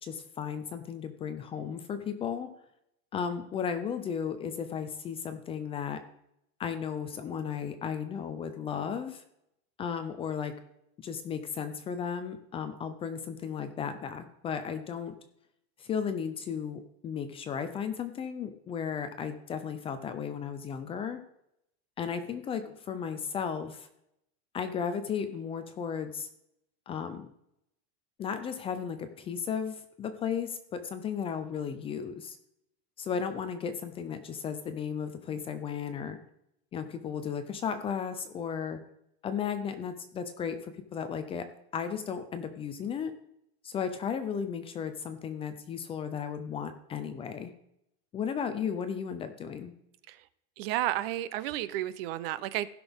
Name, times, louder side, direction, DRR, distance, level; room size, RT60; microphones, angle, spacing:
voice 1, 0.0-2.5 3.1-6.0 6.6-9.2 9.8-10.5 11.0-15.1 15.8-21.2 22.0-23.9 24.5-26.3 26.9-27.3 28.2-32.4 33.0-36.2 36.7-38.8 39.2-41.5 41.7-43.1 43.6-47.5 48.1-49.7, left 7 dB, 15° left, 9 dB, 0.4 m, -35 dB
voice 2, 50.6-52.7, right 14 dB, 60° right, 16 dB, 0.6 m, -32 dB
16.0 x 6.1 x 3.5 m, 0.78 s
supercardioid pair, 160°, 34 cm